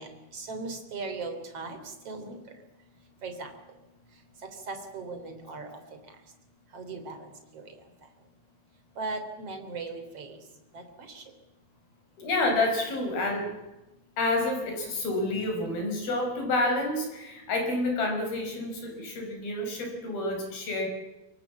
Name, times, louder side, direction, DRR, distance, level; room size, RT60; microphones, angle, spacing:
voice 1, 0.0-1.8 2.1-2.4 3.2-3.5 4.7-5.7 6.7-7.3 7.5-7.7 9.0-10.4 10.7-11.2, right 3 dB, 35° right, 6 dB, 3.9 m, -38 dB
voice 2, 12.2-13.5 14.2-20.9, left 2 dB, 55° left, 3 dB, 7.4 m, -29 dB
26.0 x 23.0 x 7.4 m, 1.0 s
omnidirectional pair, 5.2 m